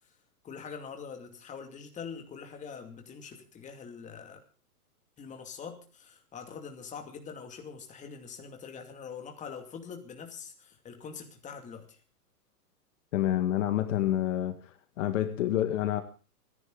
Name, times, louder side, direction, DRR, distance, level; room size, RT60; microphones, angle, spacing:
voice 1, 0.4-4.4 5.2-12.0, left 6 dB, 15° left, 2.5 m, -44 dB
voice 2, 13.1-14.6 15.0-16.0, left 12 dB, 50° left, 1.8 m, -27 dB
26.5 x 10.5 x 3.9 m
hypercardioid pair, 140°, 46 cm